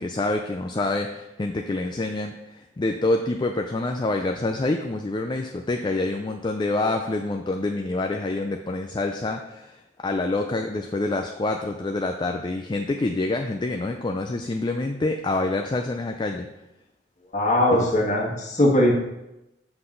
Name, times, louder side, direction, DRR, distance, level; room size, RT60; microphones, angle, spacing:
voice 1, 0.0-16.5 17.7-17.9, left 2 dB, 25° left, 4 dB, 0.4 m, -27 dB
voice 2, 17.3-18.9, left 1 dB, 45° left, -1 dB, 1.6 m, -20 dB
7.6 x 6.0 x 3.9 m, 0.94 s
head